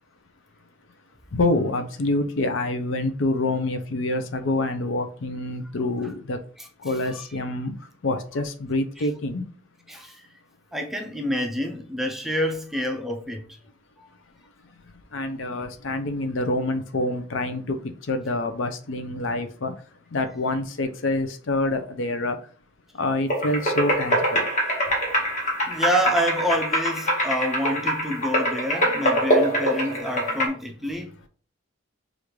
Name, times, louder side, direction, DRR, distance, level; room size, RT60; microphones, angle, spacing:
voice 1, 1.3-6.4 6.8-7.7 8.0-9.4 15.1-19.7 20.1-22.4 23.0-24.5, left 2 dB, 70° left, 0.6 m, -26 dB
voice 2, 9.9-10.3 10.7-13.4 25.6-31.1, equal, ahead, 0.4 m, -27 dB
sound 1, 23.3-30.5, equal, 35° left, 1.3 m, -24 dB
5.0 x 2.5 x 3.1 m
head